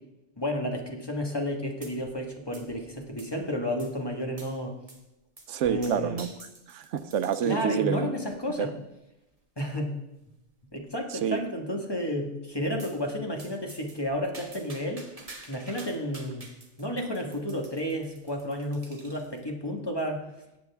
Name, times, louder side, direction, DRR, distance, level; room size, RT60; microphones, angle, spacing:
voice 1, 0.4-4.7 5.7-6.2 7.4-8.7 9.6-9.9 10.7-15.0 15.5-16.5 16.8-20.2, equal, 20° left, 1 dB, 1.5 m, -31 dB
sound 1, 1.8-2.3 2.5-3.4 3.8-3.9 4.4-4.6 4.9-5.1 5.4-7.7 8.3-8.7 9.3-9.4 9.7-9.8 10.1-10.2 10.7-11.1 12.8-13.0 13.4-19.4, right 2 dB, 30° right, 1.4 m, -49 dB
voice 2, 5.5-8.1 8.6-8.7 11.1-11.4, right 8 dB, 85° right, 13 dB, 1.0 m, -28 dB
18.0 x 8.0 x 3.5 m, 0.94 s
omnidirectional pair, 1.2 m